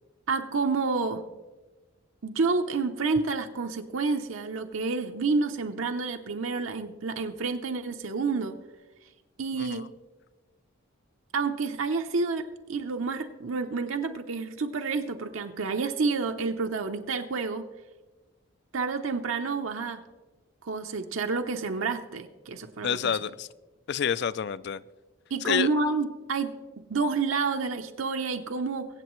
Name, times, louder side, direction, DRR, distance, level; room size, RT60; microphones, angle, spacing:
voice 1, 0.3-1.2 2.2-8.5 9.4-9.9 11.3-12.4 12.7-17.6 18.7-20.0 20.6-23.1 25.3-26.5 26.9-28.9, right 4 dB, 75° right, 5 dB, 0.7 m, -29 dB
voice 2, 22.8-23.5 23.9-24.8 25.4-25.7, left 7 dB, 55° left, 17 dB, 0.3 m, -28 dB
23.0 x 8.1 x 3.1 m, 1.2 s
head